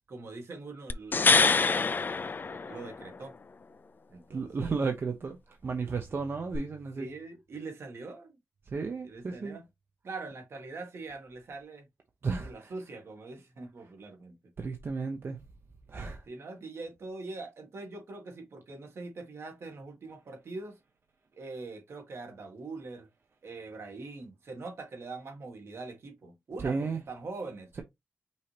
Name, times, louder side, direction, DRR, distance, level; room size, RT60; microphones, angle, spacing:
voice 1, 0.1-3.4 4.1-4.9 7.0-8.4 9.0-9.7 10.0-11.9 12.4-14.5 16.2-20.8 21.3-23.1 23.4-27.7, right 3 dB, 75° right, 1.7 m, -43 dB
sound 1, 0.9-3.2 6.5-6.6, left 4 dB, 45° left, 0.4 m, -25 dB
voice 2, 4.3-5.4 5.6-7.1 8.7-9.6 12.2-12.7 14.6-15.4 15.9-16.2 26.6-27.0, right 4 dB, 60° right, 0.8 m, -33 dB
5.5 x 3.0 x 3.3 m
cardioid pair, 65°, 5 cm